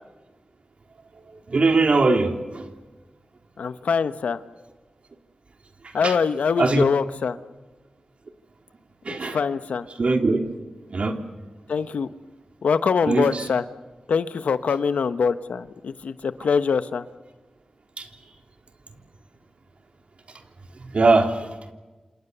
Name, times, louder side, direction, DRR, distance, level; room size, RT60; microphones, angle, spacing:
voice 1, 1.5-2.7 6.0-6.2 6.6-6.8 9.0-9.4 9.9-10.4 10.9-11.2 12.8-13.5 18.0-18.1 20.8-21.5, right 3 dB, 60° right, 4 dB, 3.3 m, -21 dB
voice 2, 3.6-4.4 5.9-7.4 9.2-9.8 11.7-12.1 12.6-13.6 14.1-17.0, left 5 dB, 90° left, 12 dB, 1.0 m, -23 dB
28.0 x 28.0 x 6.9 m, 1.2 s
cardioid pair, 60°, 2 cm